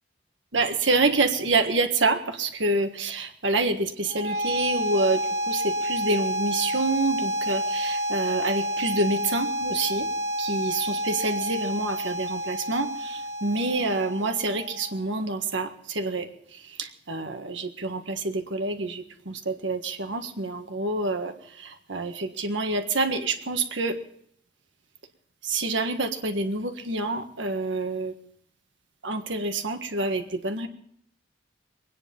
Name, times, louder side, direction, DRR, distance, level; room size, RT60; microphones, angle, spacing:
voice 1, 0.5-10.1 10.4-24.0 25.4-28.1 29.0-30.7, right 2 dB, 75° right, 6 dB, 1.6 m, -27 dB
sound 1, 4.1-15.1, equal, 60° right, 1.8 m, -29 dB
23.0 x 9.7 x 5.4 m, 0.67 s
head